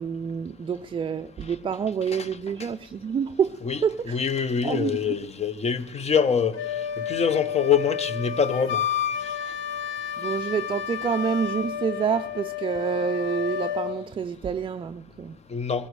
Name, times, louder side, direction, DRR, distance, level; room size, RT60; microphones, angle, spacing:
voice 1, 0.0-5.2 10.2-15.4, right 7 dB, 25° right, 0.4 m, -28 dB
voice 2, 4.1-6.6 7.1-8.8 15.5-15.9, left 6 dB, 30° left, 0.8 m, -24 dB
Wind instrument woodwind instrument, 6.5-14.0, left 9 dB, 70° left, 1.0 m, -30 dB
21.0 x 16.0 x 3.2 m
supercardioid pair, 85°, 21 cm